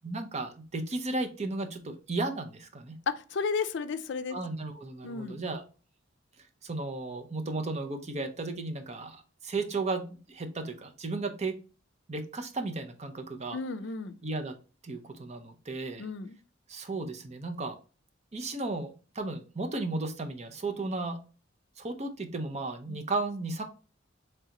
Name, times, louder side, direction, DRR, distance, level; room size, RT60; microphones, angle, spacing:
voice 1, 0.0-3.0 4.3-5.6 6.4-11.6 12.1-13.6 14.2-14.6 14.8-16.1 16.7-17.8 18.3-21.2 21.8-23.6, right 3 dB, 35° right, 6 dB, 0.7 m, -34 dB
voice 2, 3.1-4.4 5.0-5.4 13.5-14.1 16.0-16.4 22.9-23.0, left 5 dB, 65° left, 10 dB, 0.4 m, -33 dB
3.8 x 3.4 x 2.9 m, 0.35 s
head